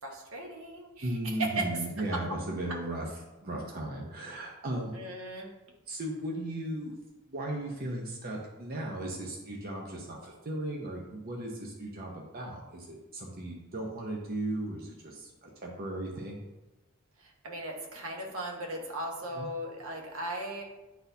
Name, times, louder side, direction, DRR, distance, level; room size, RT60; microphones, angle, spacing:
voice 1, 0.0-1.8 2.1-2.2 4.9-5.5 17.2-20.6, right 1 dB, 70° right, 1 dB, 1.2 m, -37 dB
voice 2, 1.0-3.1 3.4-4.9 5.9-6.9 7.3-16.4 19.4-19.5, right 1 dB, 45° right, -1 dB, 0.8 m, -36 dB
9.3 x 4.1 x 2.7 m, 1.1 s
head